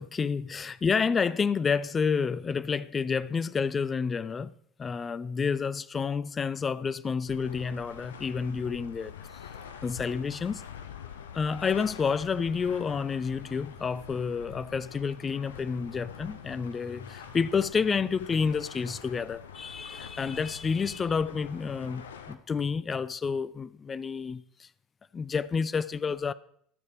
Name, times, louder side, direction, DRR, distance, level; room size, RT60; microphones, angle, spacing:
voice 1, 0.0-4.5 4.8-9.1 9.8-10.6 11.3-24.7 25.1-26.3, left 5 dB, 25° left, 0.4 m, -29 dB
sound 1, 7.3-22.4, left 8 dB, 70° left, 0.8 m, -45 dB
14.0 x 6.4 x 5.1 m
figure-of-eight pair, 75°, 0 cm